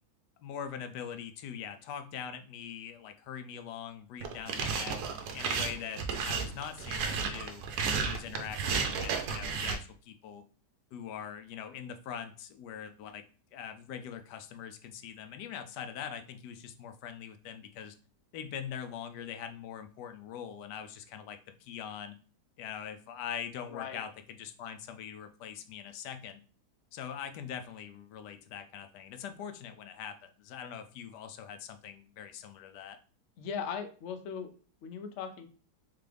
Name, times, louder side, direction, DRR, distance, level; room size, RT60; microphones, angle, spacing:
voice 1, 0.4-5.0 5.3-7.6 7.9-10.4 10.9-13.2 13.5-18.0 18.3-22.1 22.6-26.4 26.9-33.0, left 8 dB, 90° left, 8 dB, 1.2 m, -42 dB
sound 1, 4.2-9.7, right 5 dB, 75° right, 1.1 m, -33 dB
voice 2, 23.7-24.0 33.4-34.5 34.8-35.5, left 7 dB, 60° left, 6 dB, 0.7 m, -38 dB
3.8 x 3.3 x 3.3 m, 0.38 s
omnidirectional pair, 1.7 m